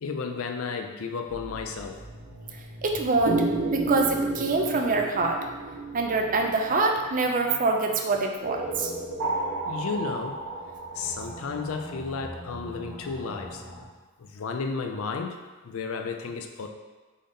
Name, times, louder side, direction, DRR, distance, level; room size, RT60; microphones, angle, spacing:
voice 1, 0.0-2.0 9.6-10.4 10.9-13.6 14.2-16.7, left 4 dB, 65° left, 4 dB, 0.4 m, -33 dB
sound 1, 1.3-13.8, right 1 dB, 20° right, 0.9 m, -45 dB
voice 2, 2.8-3.5 3.7-5.4 5.9-8.9, right 3 dB, 35° right, 3 dB, 0.5 m, -25 dB
sound 2, 3.3-7.5 8.5-12.3, right 3 dB, 75° right, 0.6 m, -31 dB
3.8 x 3.5 x 3.9 m, 1.3 s
head